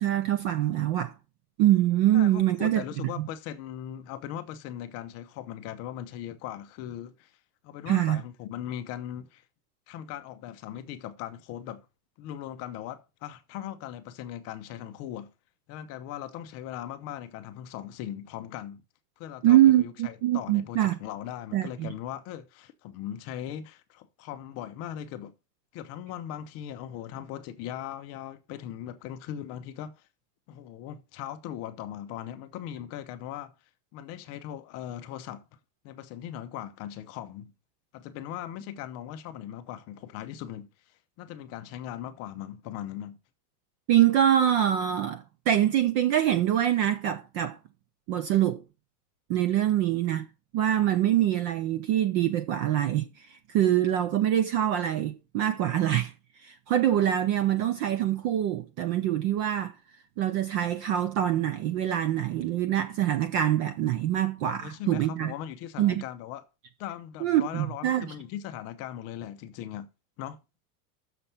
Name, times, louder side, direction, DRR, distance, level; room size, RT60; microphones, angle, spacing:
voice 1, 0.0-1.1 1.6-3.1 7.9-8.2 19.4-20.9 21.5-21.9 43.9-47.6 48.1-48.6 49.3-50.3 50.5-53.1 53.5-56.1 56.4-59.7 60.2-65.3 65.8-66.0 67.2-68.1, right 11 dB, 30° right, 0.4 m, -24 dB
voice 2, 2.1-7.3 7.6-9.4 9.9-11.9 12.2-15.3 15.7-18.8 19.2-25.3 25.7-30.0 30.5-33.5 33.9-35.4 35.8-37.5 37.9-40.7 41.2-43.2 64.4-66.4 66.8-69.9 70.2-70.4, left 11 dB, 30° left, 0.7 m, -39 dB
6.8 x 5.9 x 5.6 m
supercardioid pair, 160°, 47 cm